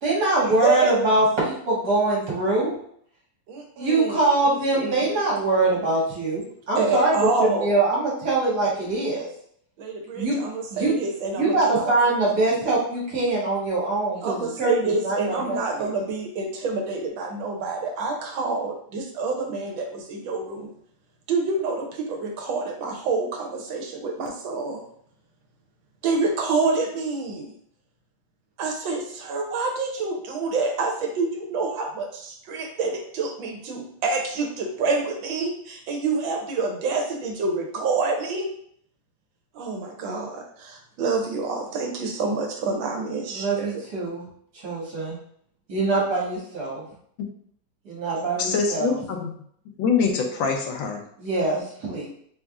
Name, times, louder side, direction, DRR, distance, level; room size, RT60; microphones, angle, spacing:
voice 1, 0.0-2.7 3.8-9.3 10.1-10.4 10.7-10.9 11.4-15.9 43.3-44.2 44.6-45.2 45.7-46.8 47.9-49.0 51.2-52.1, right 2 dB, 60° right, -5 dB, 1.9 m, -23 dB
voice 2, 0.6-1.1 3.5-5.1 6.8-7.8 9.8-11.9 14.2-20.7 21.3-24.8 26.0-27.5 28.6-38.5 39.5-43.7, right 3 dB, 85° right, 2 dB, 1.5 m, -27 dB
voice 3, 48.4-49.3 49.8-51.0, left 5 dB, 85° left, 3 dB, 1.4 m, -24 dB
4.2 x 3.5 x 2.3 m, 0.64 s
omnidirectional pair, 2.1 m